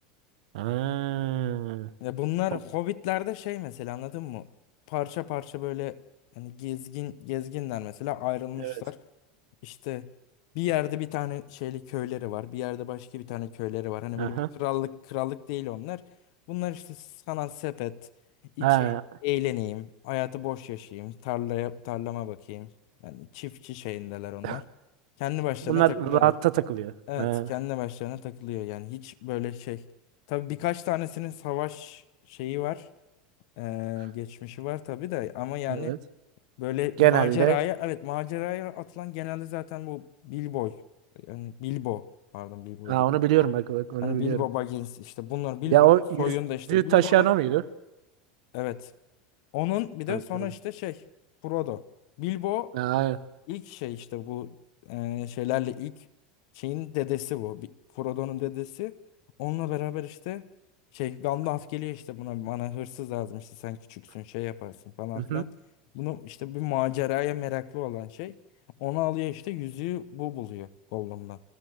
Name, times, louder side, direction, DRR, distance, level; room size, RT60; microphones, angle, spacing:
voice 1, 0.5-1.9 8.6-8.7 14.2-14.5 18.6-19.0 24.4-24.6 25.7-27.5 35.7-36.0 37.0-37.6 42.9-44.4 45.7-46.3 46.7-47.6 50.1-50.2 52.7-53.2 65.2-65.4, right 15 dB, 80° right, 1.1 m, -23 dB
voice 2, 2.0-4.5 4.9-6.0 6.4-9.0 9.6-10.1 10.5-16.1 16.5-18.1 18.6-18.9 19.2-22.7 23.0-24.6 25.2-26.3 27.1-29.8 30.3-32.0 32.3-32.9 33.6-36.0 36.6-40.8 41.2-42.1 42.3-43.1 44.0-45.9 46.2-47.3 48.5-48.9 49.5-51.0 51.4-51.8 52.2-52.8 53.5-54.6 54.8-56.0 56.5-58.9 59.4-60.5 60.9-65.5 65.9-68.4 68.8-71.4, left 16 dB, 60° left, 1.0 m, -32 dB
29.0 x 14.0 x 8.0 m
supercardioid pair, 155°, 4 cm